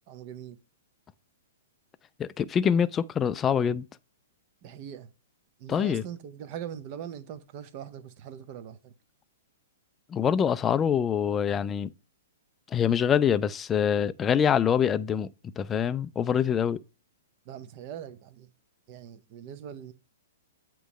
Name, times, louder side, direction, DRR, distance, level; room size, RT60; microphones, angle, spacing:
voice 1, 0.1-0.6 4.6-5.1 5.6-8.9 17.4-18.5 18.9-19.9, right 9 dB, 40° right, 0.8 m, -41 dB
voice 2, 2.2-3.8 5.7-6.0 10.1-11.9 12.7-15.3 15.6-16.8, left 8 dB, 20° left, 0.3 m, -25 dB
8.0 x 3.1 x 5.0 m
hypercardioid pair, 130°, 0 cm